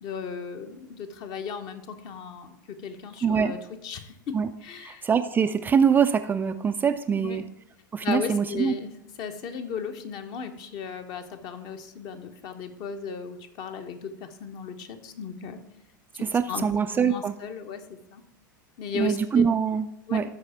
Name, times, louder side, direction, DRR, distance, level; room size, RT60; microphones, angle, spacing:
voice 1, 0.0-2.6 2.8-5.0 7.1-7.4 8.0-8.9 9.2-15.6 16.1-16.7 16.9-18.2 18.8-19.4 20.1-20.2, left 6 dB, 40° left, 8 dB, 0.9 m, -36 dB
voice 2, 3.2-3.5 4.3-4.5 4.8-7.4 7.9-8.7 16.2-17.3 18.9-20.2, right 7 dB, 15° right, 8 dB, 0.3 m, -24 dB
12.5 x 4.7 x 4.3 m, 0.82 s
figure-of-eight pair, 90°, 11 cm